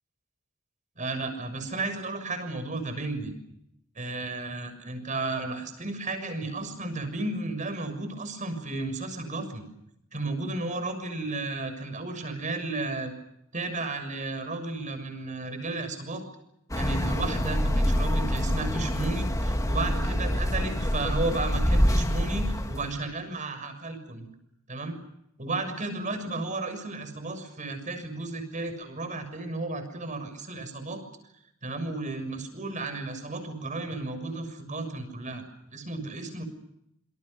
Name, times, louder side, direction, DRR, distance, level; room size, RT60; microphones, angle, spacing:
voice 1, 1.0-3.3 4.0-9.6 10.1-13.1 13.5-16.2 16.7-24.3 24.7-25.0 25.4-31.0 31.6-36.4, right 2 dB, 35° right, 9 dB, 6.7 m, -33 dB
sound 1, 16.7-22.9, equal, 15° left, 2.5 m, -26 dB
27.5 x 27.0 x 6.7 m, 0.77 s
head